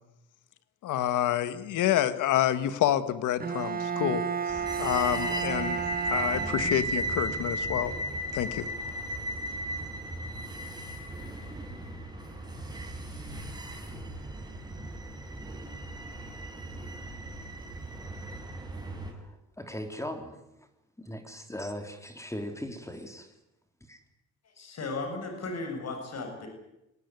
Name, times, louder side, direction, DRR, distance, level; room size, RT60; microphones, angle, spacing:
voice 1, 0.8-5.8 6.1-7.9 8.3-8.7, left 12 dB, 85° left, 13 dB, 1.8 m, -28 dB
Bowed string instrument, 3.4-7.1, right 7 dB, 30° right, 1.5 m, -32 dB
sound 1, 4.5-19.1, right 1 dB, 15° right, 6.5 m, -36 dB
voice 2, 19.2-20.7 21.0-23.3 23.9-24.0, left 1 dB, 10° left, 6 dB, 3.3 m, -39 dB
voice 3, 24.4-26.5, left 3 dB, 55° left, 4 dB, 7.6 m, -36 dB
22.5 x 18.5 x 9.7 m, 0.89 s
cardioid pair, 90°, 30 cm